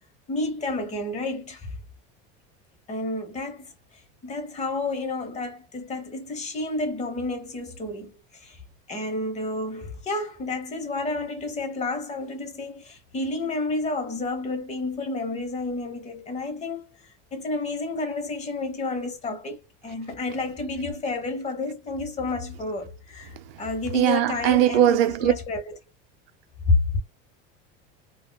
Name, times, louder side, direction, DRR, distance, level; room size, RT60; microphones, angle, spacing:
voice 1, 0.3-1.8 2.9-8.6 8.9-16.9 17.3-25.8 26.7-27.0, left 2 dB, 25° left, 0.9 m, -30 dB
voice 2, 23.9-25.3, right 12 dB, 85° right, 0.5 m, -20 dB
3.5 x 2.3 x 2.2 m
supercardioid pair, 135°, 29 cm